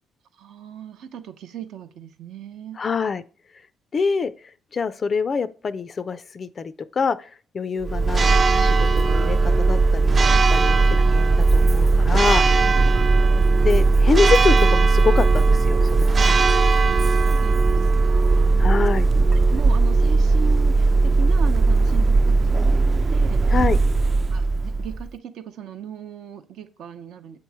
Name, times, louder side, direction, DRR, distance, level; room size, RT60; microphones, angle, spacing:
voice 1, 0.3-2.8 12.6-12.8 17.0-18.6 19.4-23.8 24.3-27.4, right 8 dB, 75° right, 0.7 m, -38 dB
voice 2, 2.8-3.2 3.9-12.8 13.6-16.6 18.6-19.1 23.5-23.8, left 5 dB, 45° left, 0.3 m, -26 dB
Church bell, 7.8-25.1, right 3 dB, 35° right, 0.4 m, -18 dB
7.4 x 3.1 x 4.6 m
cardioid pair, 80°, 0 cm